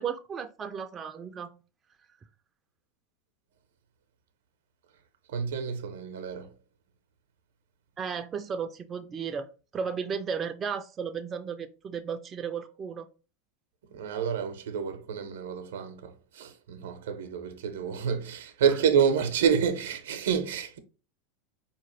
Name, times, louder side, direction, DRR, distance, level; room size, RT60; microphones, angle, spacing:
voice 1, 0.0-1.5 8.0-9.5 9.7-13.1, right 6 dB, 25° right, 0.4 m, -34 dB
voice 2, 5.3-6.5 13.9-20.8, right 7 dB, 80° right, 0.6 m, -28 dB
4.2 x 2.8 x 2.9 m
hypercardioid pair, 105°, 0 cm